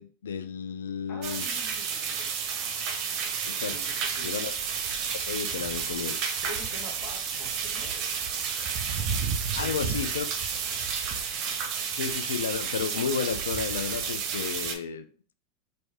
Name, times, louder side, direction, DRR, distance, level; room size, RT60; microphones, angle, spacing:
voice 1, 0.0-1.5 3.5-3.8 4.2-4.5 5.1-6.2 9.6-10.3 12.0-15.1, left 7 dB, 80° left, 11 dB, 0.3 m, -32 dB
voice 2, 1.1-2.3 3.7-4.3 6.4-8.4 9.5-10.0, left 2 dB, 45° left, 0 dB, 1.2 m, -45 dB
sound 1, 1.2-14.7, right 6 dB, 50° right, 0.6 m, -31 dB
3.2 x 2.6 x 3.3 m, 0.43 s
hypercardioid pair, 95°, 0 cm